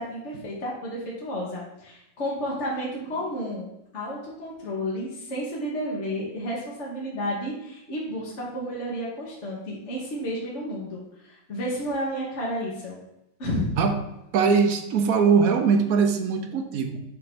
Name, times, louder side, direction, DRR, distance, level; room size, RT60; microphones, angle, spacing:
voice 1, 0.0-3.7 3.9-13.0 13.4-13.7, equal, 45° left, -4 dB, 1.2 m, -31 dB
voice 2, 14.3-17.0, right 5 dB, 60° right, 6 dB, 1.0 m, -21 dB
7.6 x 2.8 x 5.9 m, 0.87 s
omnidirectional pair, 2.1 m